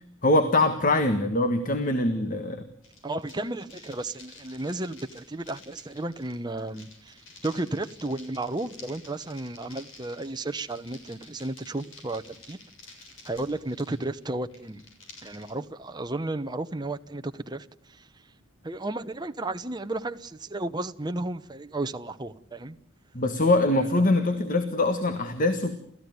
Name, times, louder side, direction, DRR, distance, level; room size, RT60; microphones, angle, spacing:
voice 1, 0.2-2.6 23.1-25.8, left 2 dB, 40° left, 1.6 m, -23 dB
sound 1, 2.8-15.5, left 3 dB, 70° left, 7.0 m, -51 dB
voice 2, 3.0-12.6 13.2-14.8 15.2-18.1 18.6-22.8 23.8-24.1, right 2 dB, 20° right, 0.9 m, -33 dB
30.0 x 15.0 x 9.6 m
head